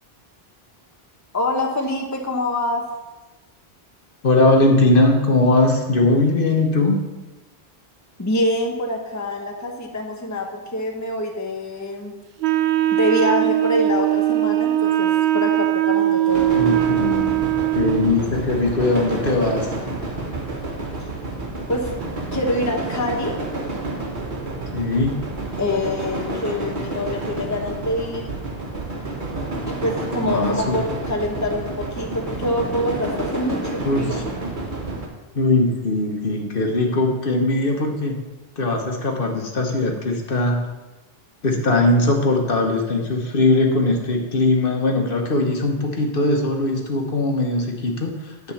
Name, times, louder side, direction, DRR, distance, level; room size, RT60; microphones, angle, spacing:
voice 1, 1.3-2.9 8.2-12.1 12.9-16.6 21.7-21.9 22.3-23.4 25.6-28.2 29.6-34.2, left 1 dB, 20° left, 2 dB, 0.8 m, -25 dB
voice 2, 4.2-7.0 16.5-17.3 17.7-19.7 24.7-25.2 30.2-30.8 33.8-34.2 35.3-38.2 38.6-40.6 41.4-48.5, left 2 dB, 60° left, 2 dB, 1.3 m, -20 dB
Wind instrument woodwind instrument, 12.4-18.3, right 13 dB, 90° right, 0.8 m, -20 dB
sound 1, 16.3-35.1, right 2 dB, 50° right, 1.4 m, -29 dB
10.5 x 3.7 x 7.1 m, 1.1 s
omnidirectional pair, 1.0 m